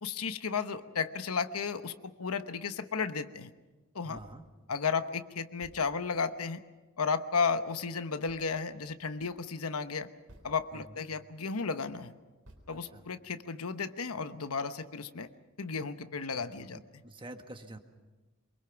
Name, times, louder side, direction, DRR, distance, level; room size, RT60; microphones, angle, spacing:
voice 1, 0.0-3.5 3.9-4.2 4.7-6.6 7.0-10.1 10.4-12.1 12.7-15.3 15.6-16.8, left 5 dB, 90° left, 10 dB, 1.0 m, -33 dB
voice 2, 4.0-4.4 10.7-11.0 12.7-13.1 16.3-17.8, right 1 dB, 25° right, 6 dB, 1.4 m, -48 dB
sound 1, 4.1-4.5 5.0-5.1 5.6-6.3 8.3-8.7 10.3-10.9 11.5-11.6 12.4-13.3, right 1 dB, 80° right, 3.9 m, -57 dB
24.5 x 23.0 x 5.9 m, 1.2 s
head